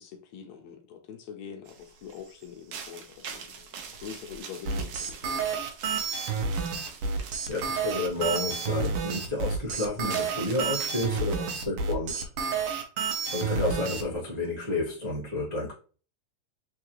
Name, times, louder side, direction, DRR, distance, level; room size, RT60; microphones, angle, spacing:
voice 1, 0.0-5.5, left 7 dB, 75° left, 1.9 m, -44 dB
sound 1, 1.7-11.4, right 6 dB, 85° right, 1.2 m, -45 dB
sound 2, 4.7-14.0, right 5 dB, 70° right, 1.5 m, -30 dB
voice 2, 7.5-12.3 13.3-15.7, left 2 dB, 30° right, 0.7 m, -30 dB
4.6 x 3.8 x 3.0 m
omnidirectional pair, 3.4 m